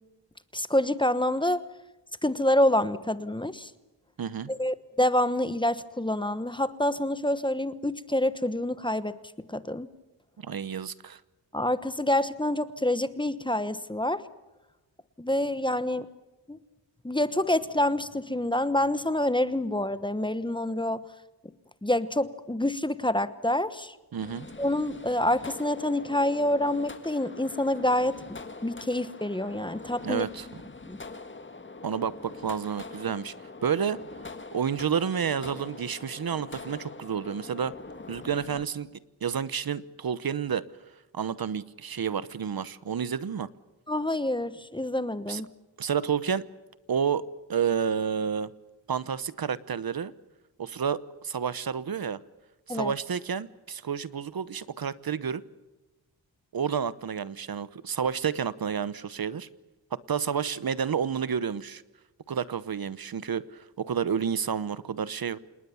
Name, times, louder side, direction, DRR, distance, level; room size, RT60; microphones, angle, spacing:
voice 1, 0.5-1.6 2.2-3.7 4.5-9.1 9.5-9.9 11.5-14.2 15.2-16.1 16.5-16.6 17.0-21.0 21.8-23.9 24.6-30.2 30.9-31.0 43.9-45.5 52.7-52.9, left 1 dB, 10° left, 14 dB, 1.1 m, -27 dB
voice 2, 4.2-4.5 10.4-11.2 24.1-24.5 30.0-30.5 31.8-33.3 33.6-34.0 34.5-37.7 38.1-38.9 39.2-40.6 41.1-43.5 45.3-45.4 45.8-46.4 46.9-48.5 48.9-50.1 50.6-52.2 52.7-55.4 56.5-59.5 60.1-61.8 62.3-65.4, right 7 dB, 55° right, 17 dB, 1.0 m, -30 dB
sound 1, 24.2-38.7, left 3 dB, 25° left, 1.8 m, -44 dB
28.0 x 19.5 x 7.1 m, 1.1 s
wide cardioid pair, 115°, 44 cm